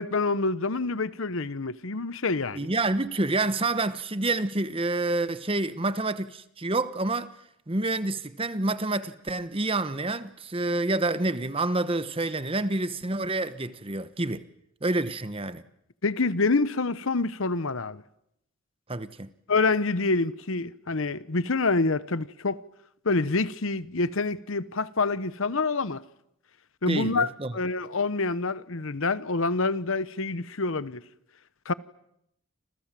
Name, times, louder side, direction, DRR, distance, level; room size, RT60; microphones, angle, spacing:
voice 1, 0.0-2.7 16.0-18.0 19.5-22.6 23.0-26.0 26.8-31.0 31.7-31.8, left 3 dB, 60° left, 1.0 m, -27 dB
voice 2, 2.5-7.3 7.7-14.4 14.8-15.6 18.9-19.3 26.9-27.5, right 2 dB, 25° right, 1.1 m, -28 dB
29.5 x 26.5 x 7.6 m
head